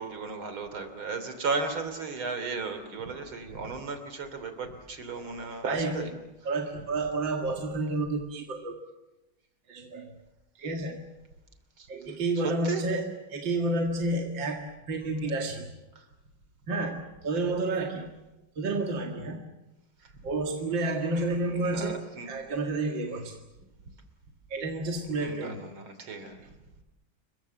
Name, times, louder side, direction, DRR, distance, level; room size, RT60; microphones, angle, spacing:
voice 1, 0.0-6.1 11.8-11.9 12.6-12.8 16.0-16.1 21.1-22.3 23.1-23.2 25.2-26.4, right 4 dB, 80° right, 9 dB, 3.9 m, -35 dB
voice 2, 5.7-6.1 6.4-8.8 9.7-10.1 10.6-11.1 11.9-15.7 16.7-18.1 18.6-19.4 20.2-23.4 24.5-25.7, right 2 dB, 65° right, 2 dB, 2.7 m, -30 dB
29.0 x 23.0 x 7.6 m, 1.0 s
omnidirectional pair, 2.2 m